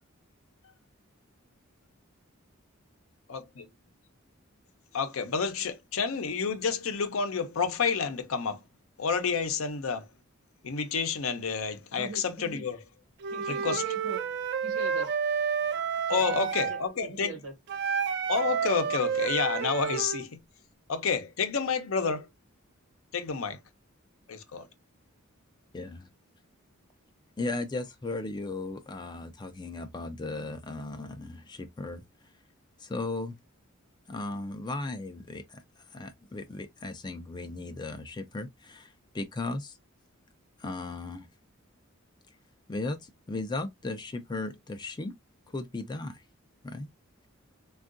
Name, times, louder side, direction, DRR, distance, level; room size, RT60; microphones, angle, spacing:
voice 1, 3.3-3.7 4.9-8.6 9.0-10.1 10.6-12.8 13.5-13.8 16.1-17.3 18.3-20.4 20.9-22.3 23.1-23.6 24.3-24.7, left 5 dB, 70° left, 0.6 m, -29 dB
voice 2, 11.9-12.7 13.3-14.3 14.6-15.2 16.1-16.8 17.1-17.5, right 2 dB, 70° right, 1.0 m, -41 dB
Wind instrument woodwind instrument, 13.2-16.8 17.7-20.3, right 6 dB, 55° right, 0.4 m, -30 dB
voice 3, 25.7-26.1 27.4-32.0 32.8-33.4 34.1-35.6 35.9-39.8 40.6-41.3 42.7-45.1 45.5-46.2 46.6-46.9, left 2 dB, 20° left, 0.3 m, -36 dB
3.5 x 2.3 x 2.5 m
head